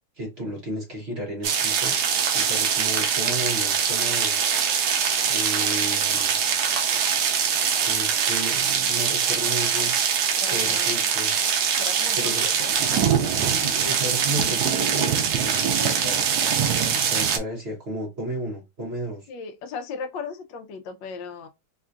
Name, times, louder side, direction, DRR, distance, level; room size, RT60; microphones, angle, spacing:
voice 1, 0.1-1.9 2.3-4.4 5.3-6.4 7.7-10.2 10.5-11.3 12.1-12.5 13.4-19.3, right 1 dB, 50° right, 0.7 m, -33 dB
sound 1, 1.4-17.4, right 7 dB, 85° right, 0.8 m, -23 dB
voice 2, 10.4-11.1 11.8-12.7 13.2-13.6 19.3-21.5, left 5 dB, 75° left, 1.1 m, -37 dB
3.6 x 2.3 x 2.4 m
omnidirectional pair, 2.4 m